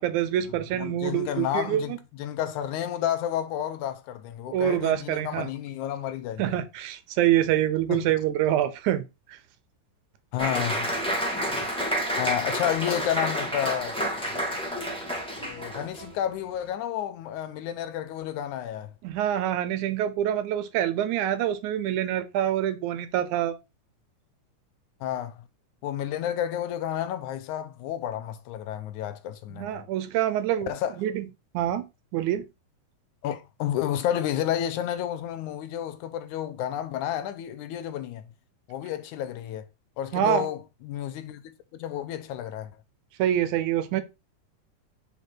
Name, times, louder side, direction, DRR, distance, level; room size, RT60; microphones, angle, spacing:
voice 1, 0.0-2.0 4.5-5.5 6.4-9.4 19.0-23.6 29.5-30.7 31.0-31.3 31.5-31.9 32.1-32.5 40.1-40.5 43.2-44.0, right 11 dB, 75° right, 2.0 m, -26 dB
voice 2, 0.8-6.6 7.9-8.1 10.3-10.9 12.2-14.0 15.4-18.9 25.0-25.4 25.8-29.9 30.7-31.0 33.2-38.2 38.7-39.6 40.0-41.4 41.7-42.7, left 11 dB, 80° left, 2.0 m, -31 dB
Applause, 10.4-16.1, equal, ahead, 1.2 m, -29 dB
5.1 x 4.9 x 4.4 m
omnidirectional pair, 3.7 m